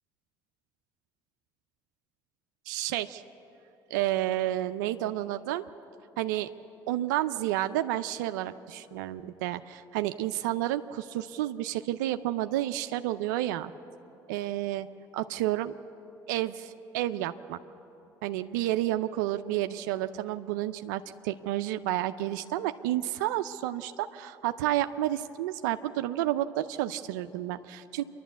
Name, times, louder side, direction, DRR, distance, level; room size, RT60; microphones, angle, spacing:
voice 1, 2.7-3.2 3.9-5.6 6.2-6.5 6.9-13.7 14.3-14.9 15.1-15.7 16.3-17.6 18.2-28.0, right 14 dB, 85° right, 9 dB, 0.5 m, -30 dB
27.0 x 12.0 x 8.2 m, 2.9 s
supercardioid pair, 70°, 10 cm